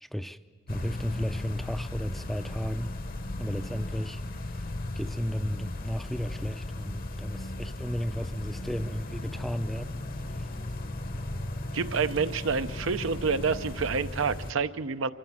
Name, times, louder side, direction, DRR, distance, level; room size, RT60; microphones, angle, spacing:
voice 1, 0.0-0.4 0.7-3.0 3.4-4.2 4.6-4.7 5.0-10.0 10.4-10.5, equal, ahead, 0.5 m, -34 dB
sound 1, 0.7-14.5, left 1 dB, 45° left, 1.0 m, -36 dB
voice 2, 11.7-15.1, right 5 dB, 80° right, 0.7 m, -28 dB
25.0 x 15.5 x 7.4 m
head